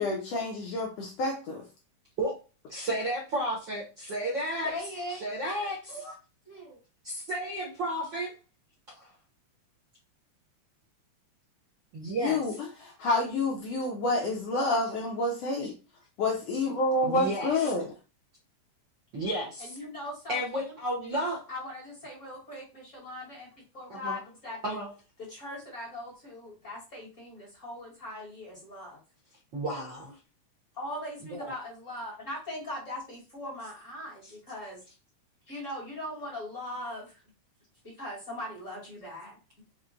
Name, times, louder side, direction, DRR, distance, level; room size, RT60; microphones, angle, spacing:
voice 1, 0.0-1.7 12.2-15.8 16.2-17.9, left 2 dB, 75° left, 0 dB, 1.6 m, -28 dB
voice 2, 2.7-4.7 5.2-5.8 7.0-8.3 8.9-9.1 11.9-12.4 17.0-17.7 19.1-19.8 20.3-21.4 23.9-24.2 24.6-24.9 29.5-30.1 31.3-31.5, right 1 dB, 60° right, -4 dB, 1.2 m, -32 dB
voice 3, 4.6-6.2 6.5-6.8 19.6-20.8 21.5-23.5 23.7-24.8 25.3-29.0 30.7-34.8 35.5-37.2 37.8-39.4, left 1 dB, 35° left, -3 dB, 1.4 m, -40 dB
5.8 x 2.1 x 3.7 m, 0.31 s
omnidirectional pair, 3.6 m